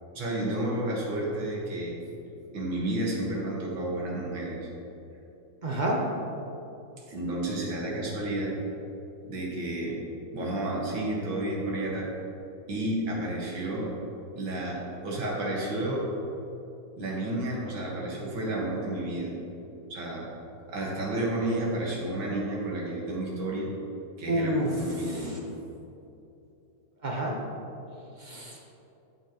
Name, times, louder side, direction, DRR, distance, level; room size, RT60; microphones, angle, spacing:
voice 1, 0.1-1.9 2.5-4.7 7.1-8.6 9.2-10.0 10.3-12.1 12.7-13.9 14.3-16.1 17.0-19.3 19.9-20.3 20.7-23.7 24.2-25.4, right 1 dB, 75° right, -3 dB, 2.2 m, -31 dB
voice 2, 5.6-6.0 24.3-25.4 27.0-27.4 28.2-28.6, right 1 dB, 40° right, -2 dB, 0.7 m, -29 dB
14.0 x 5.6 x 3.0 m, 2.8 s
omnidirectional pair, 2.2 m